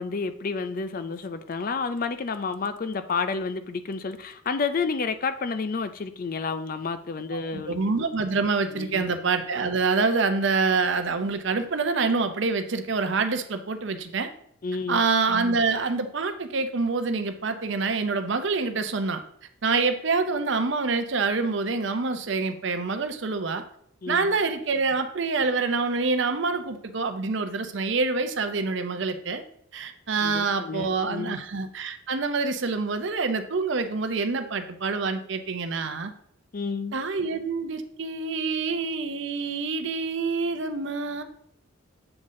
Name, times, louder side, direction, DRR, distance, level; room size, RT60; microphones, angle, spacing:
voice 1, 0.0-7.8 8.2-8.3 8.7-9.1 14.6-15.0 24.0-24.3 30.2-31.4 36.5-37.0, left 4 dB, 40° left, 0.4 m, -30 dB
voice 2, 7.3-14.3 14.9-19.2 19.6-23.6 24.1-29.4 29.7-36.1 36.9-41.2, right 4 dB, 60° right, 0.6 m, -26 dB
7.8 x 4.0 x 3.7 m
head